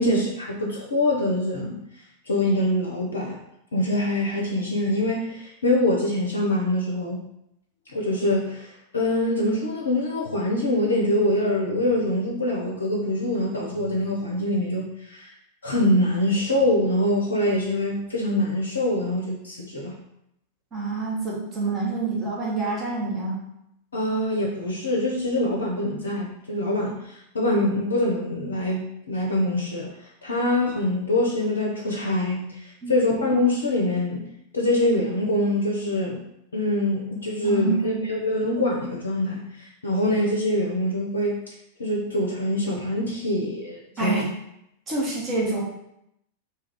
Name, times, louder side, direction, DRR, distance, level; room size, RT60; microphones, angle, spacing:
voice 1, 0.0-1.8 2.3-3.4 3.7-7.2 7.9-15.3 15.6-19.9 23.9-29.9 30.2-34.2 34.5-36.2 36.5-41.4 41.8-44.3, left 1 dB, 70° left, -1 dB, 0.5 m, -24 dB
voice 2, 20.7-23.4 32.8-32.9 37.4-38.0 44.0-44.2 44.9-45.6, right 3 dB, 25° right, -4 dB, 1.0 m, -26 dB
2.7 x 2.4 x 3.3 m, 0.80 s
figure-of-eight pair, 90°, 0 cm